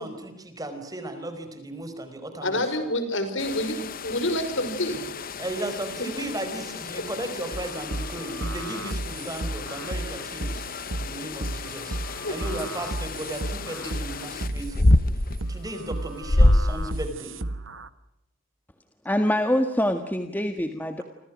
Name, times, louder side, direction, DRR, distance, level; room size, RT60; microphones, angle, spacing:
voice 1, 0.0-2.7 5.4-14.9 15.5-17.4, right 1 dB, 20° right, 8 dB, 4.9 m, -35 dB
voice 2, 2.4-5.1 6.0-6.1 6.9-7.0 12.2-12.6, left 1 dB, 65° left, 9 dB, 5.7 m, -28 dB
sound 1, 3.4-17.1, left 2 dB, 45° left, 1.0 m, -28 dB
sound 2, 7.5-17.9, right 2 dB, 75° right, 1.4 m, -34 dB
voice 3, 19.0-21.0, left 1 dB, 10° left, 6 dB, 1.6 m, -24 dB
29.5 x 26.5 x 6.3 m, 0.87 s
head